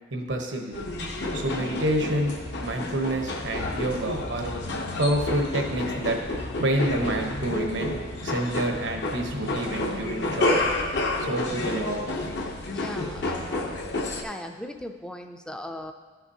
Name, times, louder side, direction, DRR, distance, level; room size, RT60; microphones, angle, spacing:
voice 1, 0.1-0.8 1.3-2.3 2.6-4.5 5.0-6.2 6.6-10.7 11.2-12.2, right 1 dB, 75° right, 2 dB, 1.1 m, -28 dB
sound 1, 0.7-14.2, left 2 dB, 65° left, 0.9 m, -30 dB
voice 2, 12.7-13.8 14.2-15.9, left 1 dB, 5° left, 5 dB, 0.4 m, -38 dB
12.5 x 5.8 x 2.8 m, 1.4 s
head